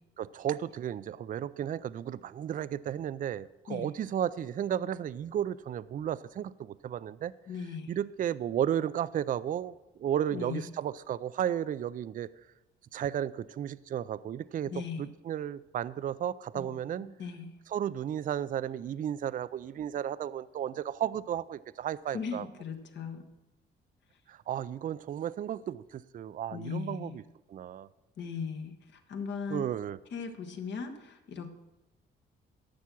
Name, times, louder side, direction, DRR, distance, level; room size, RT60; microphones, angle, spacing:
voice 1, 0.2-7.3 7.9-12.3 12.9-17.1 17.7-22.5 24.3-27.2 27.5-27.9 29.5-30.0, right 10 dB, 45° right, 17 dB, 0.4 m, -33 dB
voice 2, 7.5-8.0 10.3-10.7 14.7-15.1 16.5-17.5 22.1-23.2 26.5-27.2 28.2-29.7 30.1-31.5, left 6 dB, 65° left, 6 dB, 1.4 m, -38 dB
11.5 x 7.0 x 6.1 m, 1.0 s
cardioid pair, 90°, 20 cm